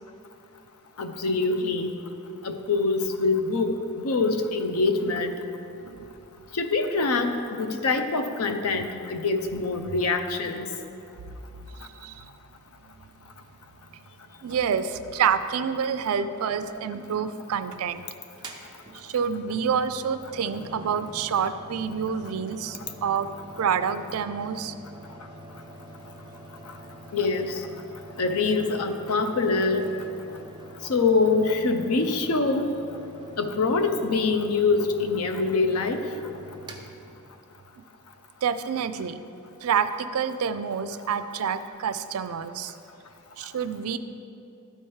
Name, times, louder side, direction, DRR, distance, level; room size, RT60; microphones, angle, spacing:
voice 1, 1.0-1.9 2.4-5.3 6.5-10.7 27.1-27.5 28.2-29.9 30.3-30.4 30.9-32.7 33.4-36.0, left 3 dB, 85° left, 7 dB, 0.6 m, -24 dB
voice 2, 11.8-12.3 14.4-18.0 18.9-23.3 23.6-24.7 38.4-39.2 39.6-42.7 43.4-44.0, right 7 dB, 75° right, 12 dB, 0.4 m, -28 dB
Mechanical fan, 18.3-37.7, equal, 20° right, 0.5 m, -46 dB
12.5 x 4.5 x 3.2 m, 2.7 s
head